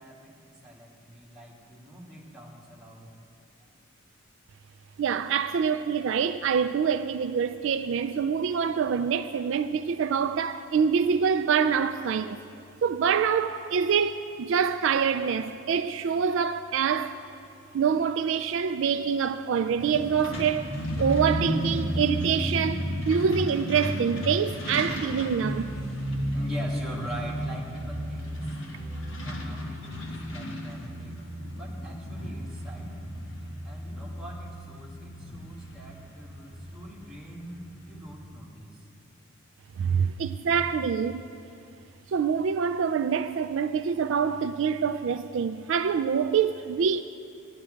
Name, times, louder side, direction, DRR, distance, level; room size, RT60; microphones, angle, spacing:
voice 1, 0.0-3.1 26.3-31.2 31.5-33.1 33.6-38.8, equal, ahead, 1.9 m, -44 dB
voice 2, 5.0-12.4 12.8-17.2 17.7-20.7 21.0-25.7 39.8-41.3 42.1-47.0, right 6 dB, 60° right, 0.3 m, -25 dB
Truck, 19.8-38.2, equal, 60° left, 1.5 m, -33 dB
15.0 x 11.0 x 5.1 m
head